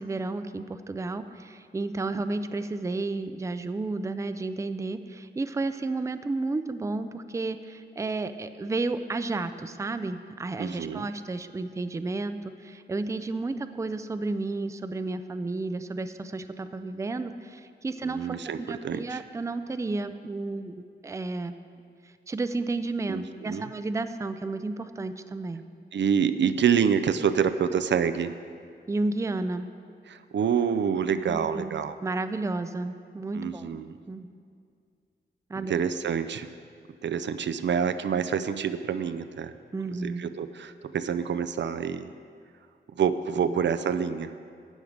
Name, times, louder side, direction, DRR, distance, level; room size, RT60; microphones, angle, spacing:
voice 1, 0.0-21.5 22.3-25.6 28.9-29.7 31.3-33.8 34.1-34.3 35.5-35.7 39.7-40.3 43.4-43.6, right 3 dB, 15° right, 10 dB, 0.4 m, -32 dB
voice 2, 10.6-11.1 18.0-19.2 23.1-23.7 25.9-28.3 30.1-32.0 33.3-33.9 35.6-36.5 37.0-39.5 39.9-42.1 43.0-44.3, right 7 dB, 80° right, 11 dB, 0.5 m, -27 dB
12.5 x 8.6 x 5.1 m, 2.2 s
wide cardioid pair, 140°, 18 cm